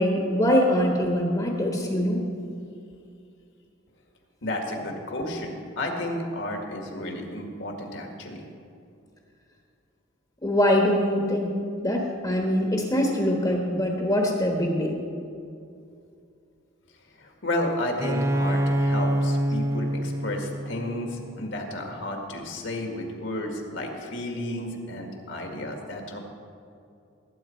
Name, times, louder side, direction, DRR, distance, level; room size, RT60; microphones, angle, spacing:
voice 1, 0.0-2.2 10.4-11.5 11.8-14.9, equal, 20° left, 0 dB, 1.3 m, -23 dB
voice 2, 4.4-8.4 17.2-26.2, left 1 dB, 65° left, 2 dB, 1.9 m, -32 dB
Bowed string instrument, 18.0-21.6, right 1 dB, 15° right, 0.5 m, -26 dB
18.5 x 8.8 x 4.5 m, 2.5 s
head